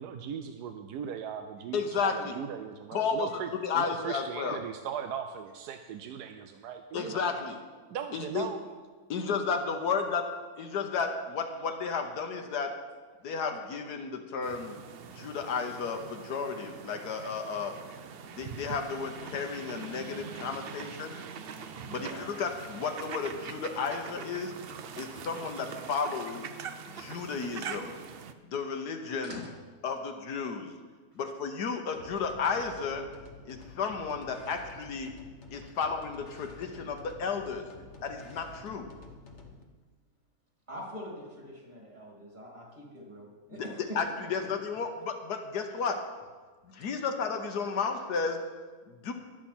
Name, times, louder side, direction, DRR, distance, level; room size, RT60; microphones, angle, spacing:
voice 1, 0.0-3.5 3.7-7.2 7.9-8.7, right 8 dB, 85° right, 7 dB, 1.2 m, -38 dB
voice 2, 1.7-2.4 2.9-4.6 6.9-7.6 8.1-8.5 9.1-10.3 10.6-12.7 13.2-14.8 15.1-17.8 18.3-21.2 21.9-24.6 25.0-26.5 26.9-28.0 28.5-29.4 29.8-30.7 31.1-33.1 33.4-35.1 35.5-37.7 38.0-38.9 43.5-43.7 43.9-46.0 46.7-48.4 48.9-49.1, left 5 dB, 80° left, 4 dB, 1.6 m, -33 dB
sound 1, 14.4-28.3, right 6 dB, 60° right, 0.6 m, -43 dB
voice 3, 21.9-22.3 29.2-29.5 40.7-44.3 47.0-47.1, equal, 30° right, -2 dB, 2.8 m, -44 dB
sound 2, 31.9-39.6, left 3 dB, 45° left, 1.4 m, -50 dB
20.5 x 7.6 x 4.4 m, 1.4 s
omnidirectional pair, 1.7 m